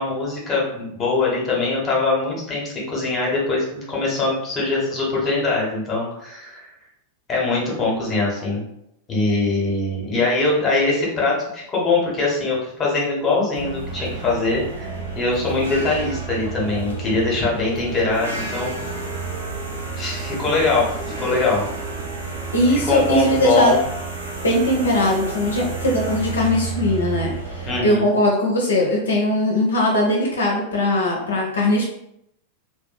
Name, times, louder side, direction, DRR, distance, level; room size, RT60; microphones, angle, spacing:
voice 1, 0.0-6.6 7.3-8.6 9.1-18.7 20.0-20.8 21.2-21.6 22.9-23.8 27.7-28.1, left 3 dB, 25° left, -4 dB, 1.0 m, -22 dB
sound 1, 13.5-27.8, right 4 dB, 75° right, 0.7 m, -31 dB
voice 2, 22.5-23.7 24.4-31.9, left 1 dB, 70° left, -2 dB, 0.5 m, -20 dB
2.5 x 2.2 x 2.5 m, 0.78 s
figure-of-eight pair, 90°, 0 cm